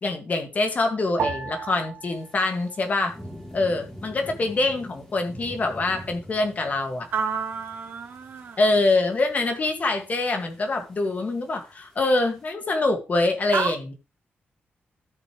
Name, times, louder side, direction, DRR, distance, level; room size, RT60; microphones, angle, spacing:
voice 1, 0.0-3.1 3.5-7.1 8.6-13.9, left 2 dB, 40° left, 1.9 m, -24 dB
sound 1, 1.2-3.7 4.0-4.9 5.5-5.9, right 6 dB, 75° right, 1.7 m, -36 dB
sound 2, 2.1-12.5, equal, 10° left, 3.1 m, -45 dB
voice 2, 7.1-8.6 13.5-13.7, right 6 dB, 60° right, 2.0 m, -29 dB
13.5 x 6.8 x 3.1 m
wide cardioid pair, 125°, 4 cm